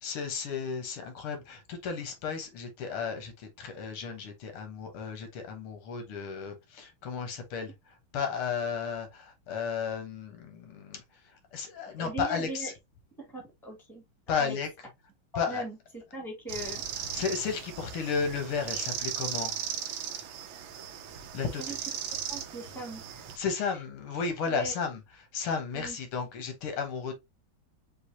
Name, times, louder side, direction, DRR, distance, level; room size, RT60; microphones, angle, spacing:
voice 1, 0.0-11.0 11.5-12.7 14.3-14.7 15.4-15.6 17.1-19.6 21.3-21.8 23.4-25.0 25.3-27.1, left 6 dB, 80° left, 2.0 m, -33 dB
voice 2, 11.8-12.7 13.2-14.6 15.3-16.8 21.4-21.7 22.3-23.2 24.4-24.7 25.7-26.0, right 1 dB, ahead, 1.5 m, -39 dB
sound 1, 16.5-23.4, right 8 dB, 70° right, 1.4 m, -37 dB
6.2 x 2.6 x 2.7 m
omnidirectional pair, 2.4 m